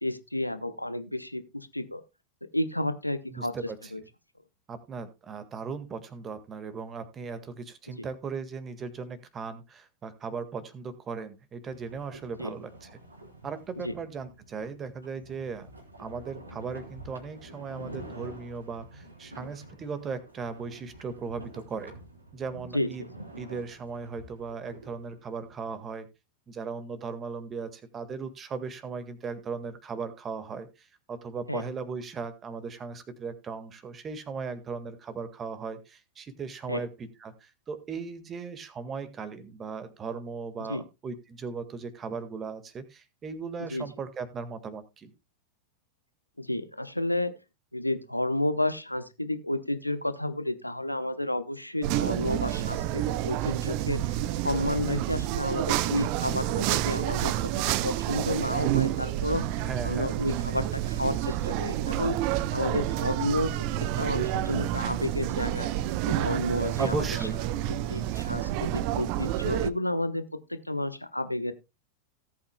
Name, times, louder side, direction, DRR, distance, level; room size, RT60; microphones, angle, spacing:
voice 1, 0.0-2.0 2.5-3.5 3.9-4.0 7.9-8.1 12.4-12.5 13.8-13.9 22.7-23.1 31.5-31.6 36.7-36.8 40.7-40.8 43.7-43.9 46.4-47.3 47.7-54.1 54.4-59.5 59.8-62.2 62.5-63.5 64.0-65.7 66.1-67.1 67.9-71.5, left 1 dB, 85° left, 12 dB, 1.0 m, -31 dB
voice 2, 3.3-3.9 4.7-12.9 13.4-15.7 16.0-21.9 22.3-23.0 23.4-26.1 26.5-45.1 59.6-60.1 66.8-67.3, right 5 dB, 25° right, 11 dB, 1.7 m, -37 dB
sound 1, 11.7-25.9, right 1 dB, 80° right, 3.5 m, -48 dB
sound 2, 51.8-69.7, right 13 dB, 45° right, 0.6 m, -29 dB
18.0 x 8.5 x 2.2 m, 0.25 s
figure-of-eight pair, 90°, 0 cm